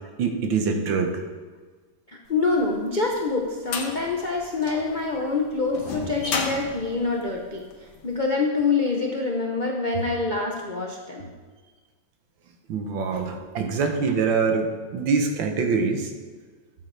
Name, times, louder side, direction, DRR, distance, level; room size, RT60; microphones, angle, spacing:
voice 1, 0.2-1.2 12.7-16.1, right 5 dB, 75° right, 4 dB, 1.7 m, -24 dB
voice 2, 2.3-7.6 8.0-11.3, left 3 dB, 60° left, 0 dB, 0.5 m, -25 dB
sound 1, 2.6-8.0, left 4 dB, 80° left, 1.8 m, -33 dB
13.0 x 7.8 x 3.3 m, 1.4 s
omnidirectional pair, 2.1 m